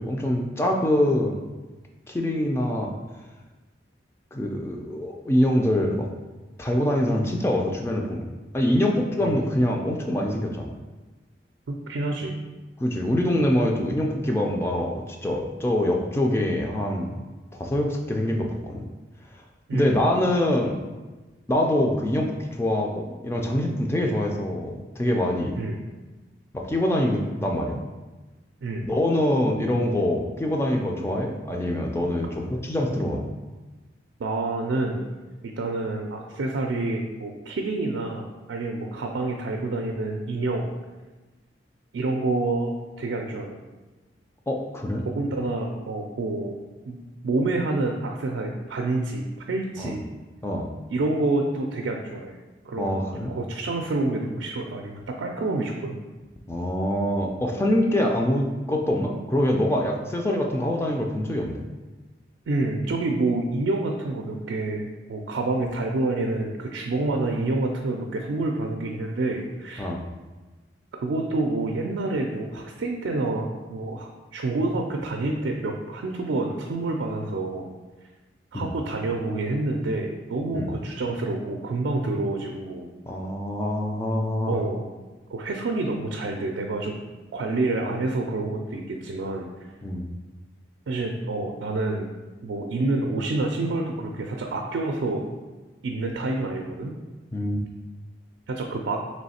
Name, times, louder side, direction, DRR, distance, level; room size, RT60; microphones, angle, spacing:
voice 1, 0.0-1.4 2.1-2.9 4.3-6.1 6.6-8.2 8.5-10.7 12.8-17.2 17.5-18.9 19.7-20.7 21.5-25.6 26.5-27.8 28.8-33.3 44.5-45.0 49.8-50.0 50.4-50.7 52.8-53.3 56.5-61.7 69.8-70.0 78.5-78.7 80.5-80.7 83.1-84.6 89.8-90.1 97.3-97.7, left 1 dB, 15° left, 1 dB, 0.3 m, -24 dB
voice 2, 9.2-9.7 11.7-12.4 19.7-19.9 25.6-25.8 28.6-28.9 34.2-35.0 35.4-40.7 41.9-43.6 45.1-46.5 46.9-47.0 47.2-50.0 50.9-52.3 52.7-53.0 53.3-56.0 62.5-69.9 71.0-77.7 78.5-82.9 84.5-84.8 85.3-87.0 87.3-89.5 90.9-92.1 92.4-95.2 95.8-97.0 98.5-99.0, right 2 dB, 90° right, 2 dB, 0.4 m, -28 dB
3.1 x 3.1 x 4.2 m, 1.2 s
head